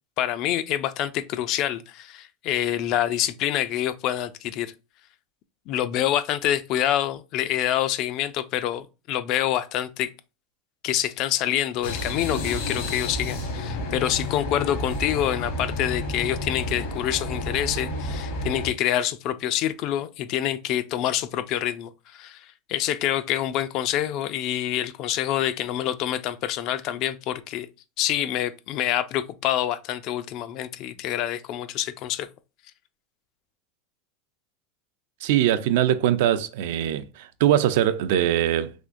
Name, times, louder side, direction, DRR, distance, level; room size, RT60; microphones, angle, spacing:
voice 1, 0.2-4.7 5.7-10.1 10.8-27.7 28.0-32.3, left 12 dB, 45° left, 0.3 m, -26 dB
sound 1, 11.8-18.7, left 1 dB, 80° left, 1.3 m, -30 dB
voice 2, 35.2-38.7, right 11 dB, 70° right, 0.4 m, -22 dB
3.5 x 3.0 x 2.5 m
supercardioid pair, 155°, 0 cm